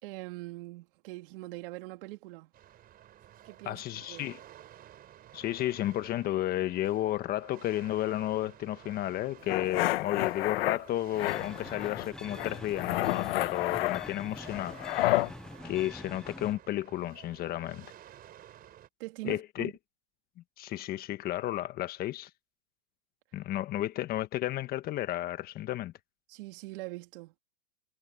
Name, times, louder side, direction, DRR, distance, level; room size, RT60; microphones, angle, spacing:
voice 1, 0.0-2.5 3.4-4.3 19.0-19.7 26.3-27.3, right 20 dB, 50° right, 3.1 m, -42 dB
sound 1, 2.5-18.9, right 12 dB, 25° right, 5.1 m, -53 dB
voice 2, 3.7-4.4 5.3-15.1 15.6-17.9 19.2-19.7 20.6-22.3 23.3-25.9, left 14 dB, 25° left, 1.3 m, -32 dB
sound 2, 9.5-10.8 11.2-12.1 12.4-15.3, left 17 dB, 55° left, 1.1 m, -30 dB
sound 3, 11.1-16.6, left 2 dB, ahead, 0.4 m, -45 dB
hypercardioid pair, 135°, 36 cm